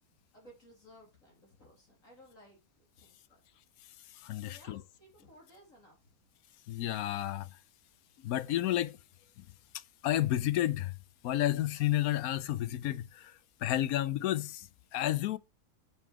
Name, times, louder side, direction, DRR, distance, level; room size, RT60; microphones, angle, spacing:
voice 1, 0.3-3.4 4.3-6.3, equal, 50° left, 3.5 m, -58 dB
voice 2, 4.1-4.8 6.7-7.6 8.2-9.0 9.4-9.5 9.7-10.9 11.2-15.4, left 13 dB, 70° left, 1.0 m, -31 dB
7.1 x 5.4 x 5.7 m
omnidirectional pair, 1.7 m